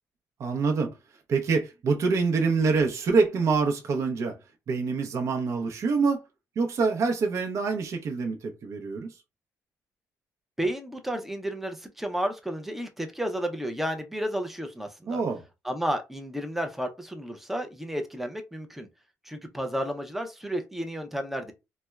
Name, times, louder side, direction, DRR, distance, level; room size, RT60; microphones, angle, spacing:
voice 1, 0.4-0.9 1.3-4.4 4.7-6.2 6.6-9.1 15.1-15.4, right 4 dB, 50° right, 0.6 m, -25 dB
voice 2, 10.6-15.2 15.6-18.9 19.3-21.5, equal, 5° right, 0.5 m, -32 dB
4.1 x 2.1 x 2.3 m
cardioid pair, 145°, 6 cm